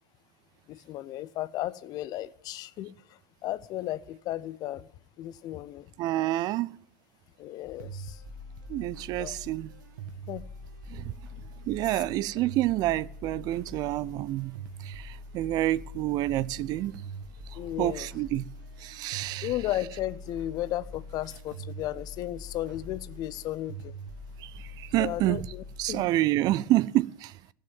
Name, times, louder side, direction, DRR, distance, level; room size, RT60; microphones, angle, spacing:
voice 1, 0.7-2.9 3.4-4.9 5.2-5.9 7.4-8.2 9.2-9.4 10.3-10.4 11.9-12.0 17.6-18.1 19.4-23.9 25.0-26.1, left 14 dB, 35° left, 0.6 m, -34 dB
voice 2, 6.0-6.8 8.7-9.7 10.9-11.1 11.7-14.5 14.8-16.9 17.8-18.5 18.8-19.5 24.4-24.5 24.8-25.4 25.8-27.3, right 15 dB, 35° right, 0.4 m, -28 dB
sound 1, 7.8-26.1, equal, 60° right, 1.8 m, -43 dB
15.5 x 6.5 x 7.4 m
figure-of-eight pair, 90°, 11 cm